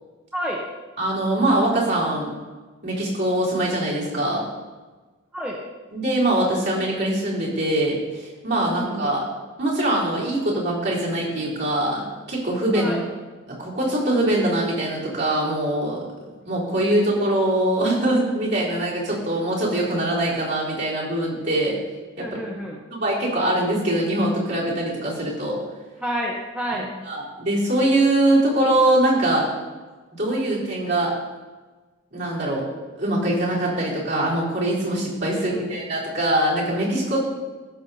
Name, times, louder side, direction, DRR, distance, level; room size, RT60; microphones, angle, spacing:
voice 1, 0.3-0.6 5.3-5.6 8.7-9.2 12.7-13.1 22.2-22.8 26.0-26.9 35.3-35.7, equal, 5° right, -3 dB, 1.1 m, -29 dB
voice 2, 1.0-2.3 2.8-4.5 5.9-9.2 9.6-12.0 12.3-12.9 13.5-16.0 16.4-21.7 22.2-22.3 22.9-25.6 27.1-29.5 30.1-31.1 32.1-32.6 33.0-37.2, right 1 dB, 55° right, -6 dB, 4.1 m, -22 dB
16.0 x 7.2 x 4.2 m, 1.3 s
head